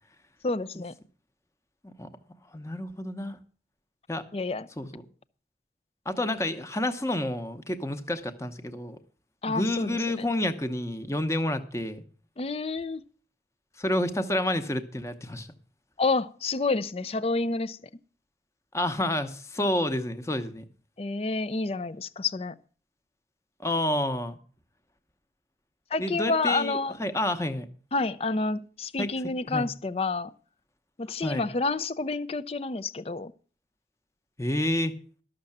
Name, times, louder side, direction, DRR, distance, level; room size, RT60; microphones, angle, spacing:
voice 1, 0.4-0.9 4.3-4.7 9.4-10.3 12.4-13.0 16.0-17.8 21.0-22.5 25.9-27.0 27.9-30.3 31.0-33.3, left 3 dB, 35° left, 0.5 m, -29 dB
voice 2, 2.5-3.4 4.1-4.2 4.8-5.0 6.1-9.0 9.5-12.0 13.8-15.5 18.7-20.6 23.6-24.4 26.0-27.7 29.0-29.1 29.5-29.7 31.2-31.5 34.4-34.9, left 1 dB, 15° left, 0.9 m, -29 dB
12.5 x 6.6 x 7.1 m
head